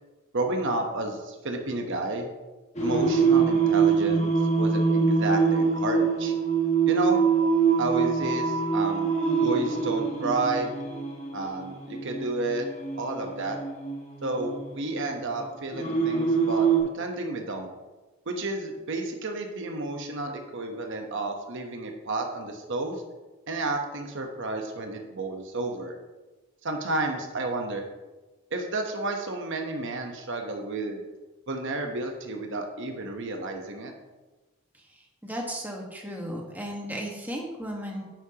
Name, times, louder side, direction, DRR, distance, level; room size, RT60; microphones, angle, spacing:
voice 1, 0.3-2.3 2.8-6.3 6.9-7.3 7.8-9.1 9.4-10.7 11.3-12.7 13.0-13.6 14.2-16.7 16.9-17.7 18.3-23.0 23.5-25.9 26.6-27.8 28.5-31.0 31.5-33.9, right 2 dB, 55° right, 3 dB, 1.0 m, -31 dB
Singing, 2.8-16.8, right 5 dB, 30° left, 1.6 m, -25 dB
voice 2, 35.2-38.0, equal, 10° right, 0 dB, 1.4 m, -35 dB
10.5 x 9.6 x 2.9 m, 1.2 s
head